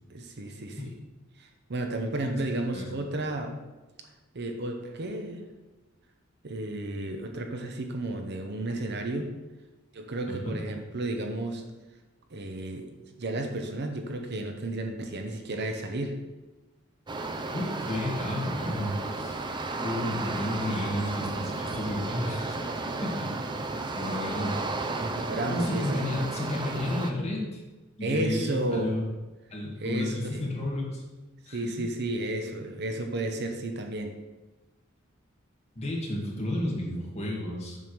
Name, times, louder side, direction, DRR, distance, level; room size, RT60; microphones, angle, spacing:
voice 1, 0.1-0.9 1.4-3.5 4.3-5.5 6.4-9.3 9.9-11.6 12.3-12.9 13.2-16.2 24.9-26.2 28.0-28.9 29.8-30.5 31.5-34.2, right 2 dB, 55° right, 4 dB, 0.8 m, -32 dB
voice 2, 10.2-10.6 17.5-19.5 19.8-22.6 23.0-23.3 23.9-24.6 25.5-27.6 28.0-29.1 29.5-31.0 31.5-31.8 35.7-37.8, left 1 dB, 35° left, -3 dB, 1.6 m, -32 dB
sound 1, 17.1-27.1, right 3 dB, 25° right, 0.5 m, -33 dB
7.3 x 3.4 x 6.0 m, 1.1 s
head